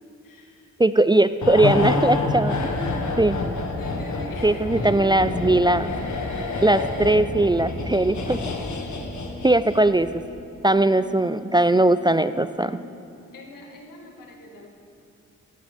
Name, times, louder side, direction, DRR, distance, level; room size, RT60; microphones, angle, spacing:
voice 1, 0.2-0.7 3.5-5.0 13.3-14.7, left 1 dB, 85° left, 1 dB, 1.8 m, -43 dB
voice 2, 0.8-2.6 3.2-3.4 4.4-5.9 6.6-8.4 9.4-10.2 10.6-12.8, right 2 dB, 15° right, 13 dB, 0.4 m, -19 dB
sound 1, 1.4-9.9 10.2-10.4, left 3 dB, 60° left, 1.6 m, -28 dB
sound 2, 4.8-14.0, left 2 dB, 20° left, 3.4 m, -46 dB
17.0 x 13.0 x 3.5 m, 2.5 s
supercardioid pair, 50°, 32 cm